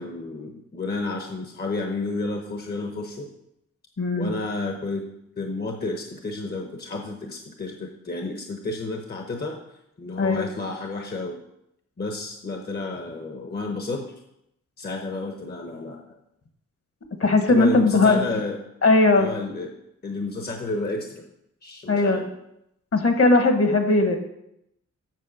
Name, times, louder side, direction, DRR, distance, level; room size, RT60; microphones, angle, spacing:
voice 1, 0.0-3.3 4.1-5.1 5.4-9.6 10.0-11.4 12.0-14.1 14.8-16.0 17.5-18.6 19.1-19.7 20.0-21.3 21.6-22.3, left 3 dB, 35° left, 3 dB, 0.9 m, -31 dB
voice 2, 4.0-4.3 10.2-10.5 17.2-18.2 18.8-19.3 21.9-22.2 22.9-24.2, left 2 dB, 50° left, 6 dB, 1.3 m, -18 dB
7.6 x 6.4 x 6.4 m, 0.81 s
wide cardioid pair, 125°, 30 cm